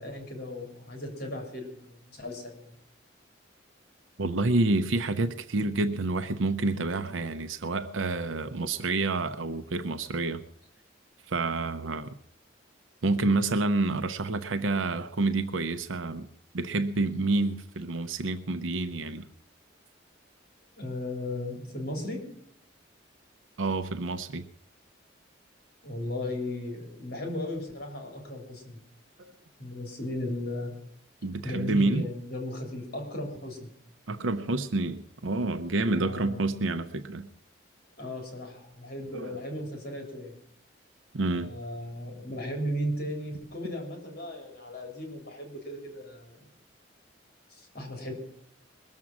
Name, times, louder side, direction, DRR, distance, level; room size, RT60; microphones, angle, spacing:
voice 1, 0.0-2.7 20.8-22.2 25.8-28.8 29.6-30.7 31.4-33.7 35.9-36.4 38.0-40.3 41.4-46.5 47.5-48.1, left 1 dB, 50° left, 2 dB, 3.5 m, -36 dB
voice 2, 4.2-10.4 11.3-12.1 13.0-16.3 16.5-19.3 23.6-24.4 29.2-29.3 31.2-32.1 34.1-37.3 39.1-39.4 41.1-41.5, right 2 dB, 85° right, 9 dB, 0.7 m, -28 dB
21.5 x 7.4 x 6.2 m, 0.69 s
head